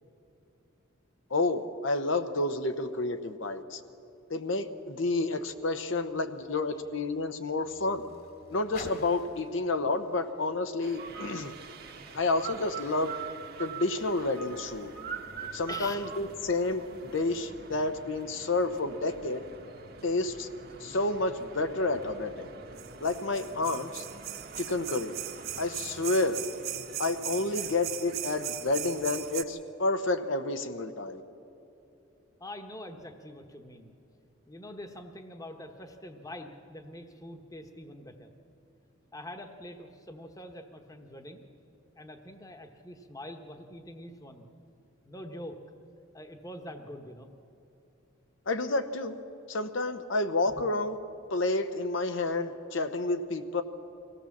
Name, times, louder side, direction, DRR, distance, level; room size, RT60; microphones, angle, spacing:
voice 1, 1.3-3.8 4.3-8.0 8.5-11.5 12.1-13.1 13.6-14.9 15.5-19.4 20.0-20.5 20.8-22.5 23.0-24.0 24.6-25.1 25.6-26.4 27.0-31.2 48.5-49.2 49.5-51.0 51.3-53.6, left 2 dB, 65° left, 8 dB, 0.9 m, -30 dB
Car, 5.5-11.7 12.5-12.6, left 2 dB, 50° left, 1.9 m, -52 dB
sound 1, 10.8-29.4, right 9 dB, 50° right, 1.4 m, -41 dB
voice 2, 15.7-16.1 32.4-33.9 34.5-38.3 39.1-41.4 42.0-44.5 45.0-45.6 46.1-47.3, left 1 dB, 15° left, 6 dB, 1.1 m, -44 dB
24.0 x 17.0 x 7.2 m, 2.9 s
head